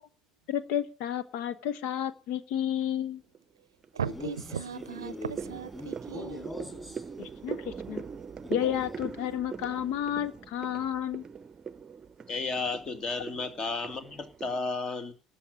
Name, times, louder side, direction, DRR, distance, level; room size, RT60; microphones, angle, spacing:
voice 1, 0.5-3.2 7.2-8.0 8.5-11.2, left 10 dB, 60° left, 1.0 m, -31 dB
sound 1, 2.9-3.4 3.8-14.6, right 6 dB, 30° right, 0.7 m, -42 dB
voice 2, 3.9-6.5, right 7 dB, 85° right, 0.6 m, -37 dB
Male speech man speaking, 4.0-7.1 8.4-9.1, left 1 dB, 10° left, 5.8 m, -42 dB
voice 3, 12.3-15.1, left 4 dB, 35° left, 2.5 m, -33 dB
13.0 x 6.4 x 9.9 m
figure-of-eight pair, 65°, 2 cm